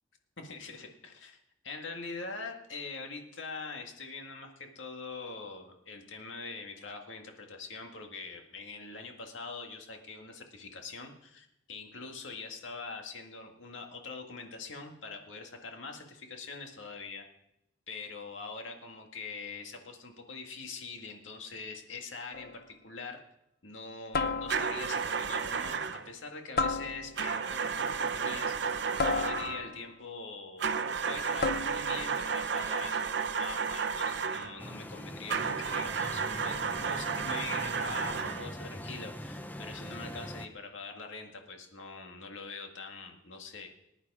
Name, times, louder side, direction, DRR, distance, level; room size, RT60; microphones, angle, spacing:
voice 1, 0.4-1.4 1.6-17.2 17.9-23.2 23.6-30.7 31.1-43.7, left 4 dB, 85° left, 3 dB, 2.0 m, -43 dB
sound 1, 22.3-22.7 24.1-24.9 26.6-27.4 29.0-29.9 31.4-32.0, left 4 dB, 55° left, 0.7 m, -32 dB
sound 2, 24.5-26.1 27.2-29.6 30.6-34.6 35.3-38.5, right 6 dB, 65° right, 0.7 m, -32 dB
sound 3, 34.6-40.5, equal, 10° left, 0.6 m, -42 dB
19.5 x 10.0 x 4.9 m, 0.80 s
head